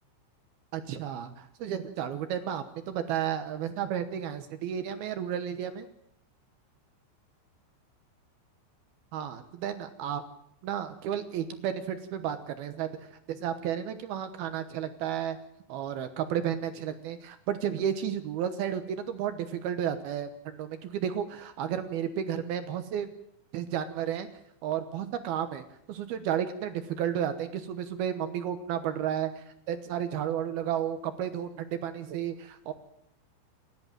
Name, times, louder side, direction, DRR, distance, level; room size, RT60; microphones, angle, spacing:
voice 1, 0.7-5.9 9.1-10.2 10.6-15.4 15.7-23.1 23.5-24.3 24.6-25.6 25.9-32.7, right 9 dB, 70° right, 9 dB, 2.5 m, -32 dB
28.5 x 11.0 x 9.0 m, 0.75 s
omnidirectional pair, 5.6 m